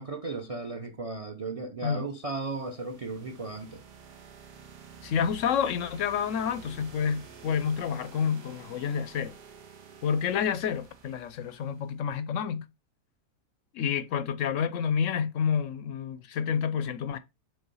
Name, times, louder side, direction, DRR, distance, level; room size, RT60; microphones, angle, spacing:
voice 1, 0.0-3.8, right 3 dB, 30° right, 0.7 m, -35 dB
sound 1, 2.1-11.9, right 6 dB, 85° right, 1.8 m, -50 dB
voice 2, 5.0-9.3 10.0-12.7 13.7-17.2, left 7 dB, 65° left, 0.8 m, -29 dB
6.8 x 3.6 x 5.4 m
omnidirectional pair, 1.7 m